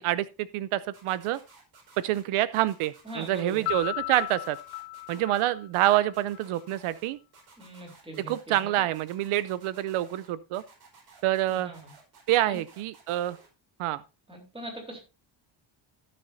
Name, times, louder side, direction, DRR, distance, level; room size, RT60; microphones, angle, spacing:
voice 1, 0.0-1.4 2.0-4.6 5.1-7.2 8.3-10.6 11.2-11.7 12.3-13.4 13.8-14.0, right 14 dB, 80° right, 0.7 m, -27 dB
sound 1, 0.9-2.2 2.5-3.9 4.1-5.4 5.7-7.1 7.3-8.6 8.9-10.3 10.5-13.5, right 4 dB, 45° right, 5.1 m, -55 dB
voice 2, 3.0-3.6 7.6-8.3 8.6-8.8 11.5-11.9 12.5-12.6 14.3-15.0, right 1 dB, 10° right, 3.7 m, -41 dB
Piano, 3.6-6.5, left 24 dB, 85° left, 0.8 m, -36 dB
16.5 x 6.7 x 2.7 m
cardioid pair, 165°, 49 cm